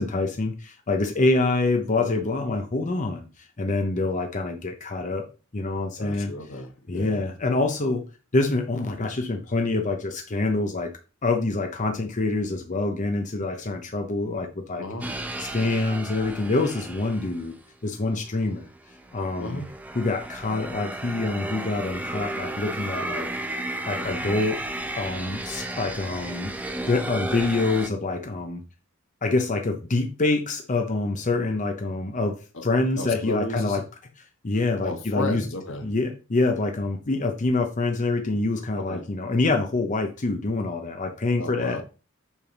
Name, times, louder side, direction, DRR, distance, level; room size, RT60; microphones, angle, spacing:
voice 1, 0.0-5.3 5.5-6.3 6.9-8.0 8.3-10.9 11.2-17.6 17.8-18.7 19.1-19.6 19.9-23.3 23.9-24.6 25.0-26.5 26.9-28.6 29.2-33.8 34.4-35.4 35.8-41.8, left 2 dB, 35° left, 0.7 m, -26 dB
voice 2, 6.0-7.2 14.8-15.1 19.4-19.7 32.5-32.6 33.0-33.8 34.8-35.9 38.8-39.0 41.4-41.8, left 2 dB, 65° left, 1.4 m, -33 dB
sound 1, 15.0-17.5 18.3-27.9, right 1 dB, 5° right, 0.7 m, -33 dB
7.1 x 3.5 x 5.8 m
head